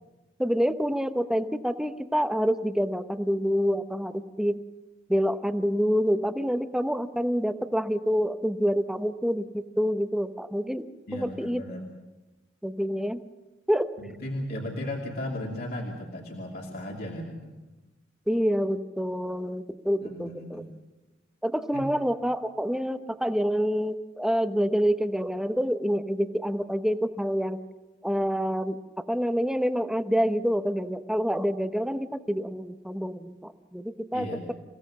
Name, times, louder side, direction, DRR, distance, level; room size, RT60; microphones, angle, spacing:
voice 1, 0.4-4.6 5.1-11.6 12.6-13.2 13.7-13.9 18.3-20.6 21.4-27.6 28.0-28.8 29.1-34.3, equal, 5° right, 9 dB, 0.9 m, -27 dB
voice 2, 11.1-11.8 14.0-17.5 20.0-20.8 21.7-21.9 34.1-34.5, left 1 dB, 55° left, -2 dB, 2.8 m, -36 dB
27.5 x 17.0 x 7.4 m, 1.1 s
head